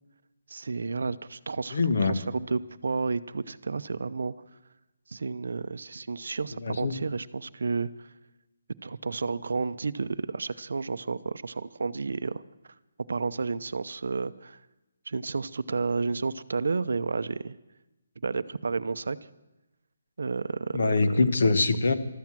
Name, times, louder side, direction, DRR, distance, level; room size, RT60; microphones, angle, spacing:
voice 1, 0.5-4.3 5.1-8.1 8.8-12.4 13.1-14.6 15.1-17.6 18.2-19.2 20.2-21.2, right 4 dB, 65° right, 14 dB, 0.6 m, -31 dB
voice 2, 1.7-2.2 6.6-7.0 20.7-21.9, left 3 dB, 50° left, 9 dB, 1.1 m, -23 dB
13.0 x 13.0 x 7.5 m, 1.0 s
hypercardioid pair, 180°, 0 cm